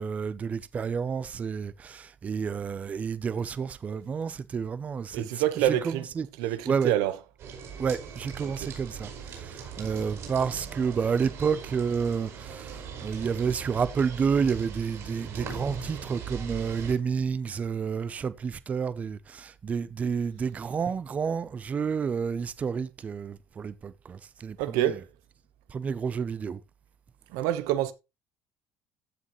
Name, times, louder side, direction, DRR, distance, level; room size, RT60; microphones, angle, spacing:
voice 1, 0.0-6.3 6.7-7.0 7.8-25.0 25.7-26.6, right 6 dB, 25° right, 0.6 m, -30 dB
voice 2, 5.1-6.0 6.4-7.1 8.4-8.7 24.6-25.0 27.3-27.9, right 12 dB, 90° right, 1.1 m, -27 dB
sound 1, 7.4-16.9, right 6 dB, 50° right, 5.1 m, -40 dB
15.0 x 6.3 x 3.1 m
cardioid pair, 160°, 6 cm